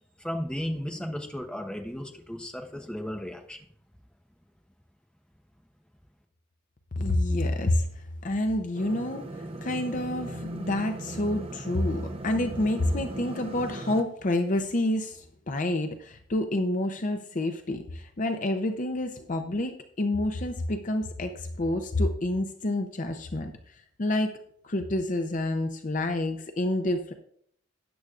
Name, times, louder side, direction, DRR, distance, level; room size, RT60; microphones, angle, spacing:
voice 1, 0.2-3.6, equal, 5° left, 3 dB, 1.0 m, -34 dB
voice 2, 7.0-23.5 24.0-24.3 24.6-27.1, left 1 dB, 40° left, 7 dB, 0.6 m, -28 dB
sound 1, 8.7-14.0, right 1 dB, 30° right, 0.7 m, -38 dB
13.0 x 9.5 x 2.5 m, 0.65 s
head